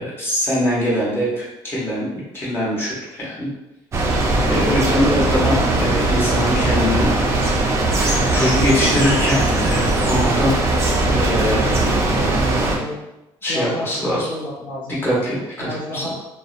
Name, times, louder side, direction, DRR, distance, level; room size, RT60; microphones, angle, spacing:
voice 1, 0.0-2.0 2.3-3.5 4.4-7.1 7.8-10.6 11.1-11.9 13.4-14.2 15.0-16.1, left 1 dB, 25° left, -7 dB, 1.1 m, -22 dB
sound 1, 3.9-12.8, right 2 dB, 30° right, 0.4 m, -19 dB
voice 2, 11.8-13.0 13.5-15.0 15.6-16.1, left 1 dB, 60° left, -6 dB, 0.5 m, -31 dB
2.7 x 2.0 x 2.4 m, 0.95 s
cardioid pair, 120°, 10 cm